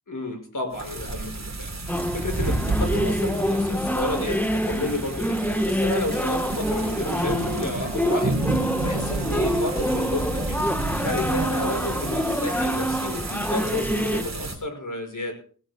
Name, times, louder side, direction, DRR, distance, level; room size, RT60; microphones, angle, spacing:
voice 1, 0.1-10.6 11.0-15.3, left 2 dB, 50° left, 4 dB, 5.7 m, -31 dB
sound 1, 0.7-14.6, right 2 dB, 45° right, 3.2 m, -31 dB
sound 2, 1.9-14.2, equal, 5° left, 1.1 m, -26 dB
19.5 x 18.5 x 2.2 m, 0.41 s
wide cardioid pair, 100°, 39 cm